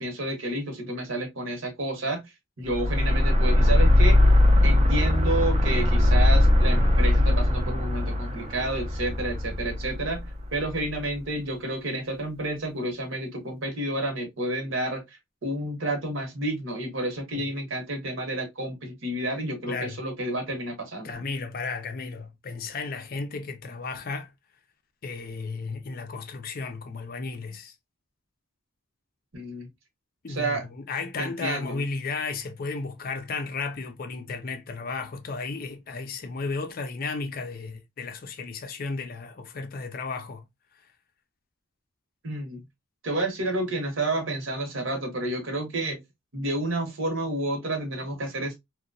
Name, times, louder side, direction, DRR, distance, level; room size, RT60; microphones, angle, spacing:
voice 1, 0.0-2.2 2.6-4.2 4.6-10.2 10.5-21.1 29.3-29.7 30.3-30.7 31.2-31.8 42.2-42.6 43.0-46.0 46.3-48.5, right 1 dB, 70° right, 1.0 m, -30 dB
sound 1, 2.7-11.0, left 1 dB, 30° right, 0.4 m, -20 dB
voice 2, 19.7-20.0 21.0-24.3 25.0-27.7 30.2-40.4, left 4 dB, 45° left, 0.4 m, -34 dB
2.8 x 2.1 x 2.5 m
head